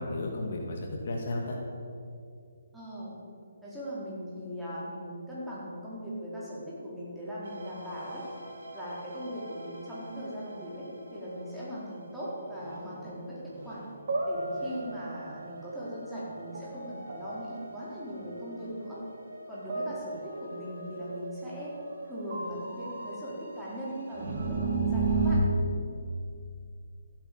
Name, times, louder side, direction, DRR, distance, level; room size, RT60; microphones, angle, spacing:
voice 1, 0.0-1.6, left 2 dB, 55° left, 0 dB, 2.2 m, -33 dB
voice 2, 2.7-3.1 3.6-8.2 8.7-13.8 14.3-19.0 19.5-21.7 22.1-25.4, equal, ahead, -10 dB, 4.3 m, -39 dB
sound 1, 7.4-11.3 12.5-13.0 13.5-25.3, right 3 dB, 60° right, 3.1 m, -36 dB
15.0 x 8.7 x 6.9 m, 2.5 s
figure-of-eight pair, 145°, 0 cm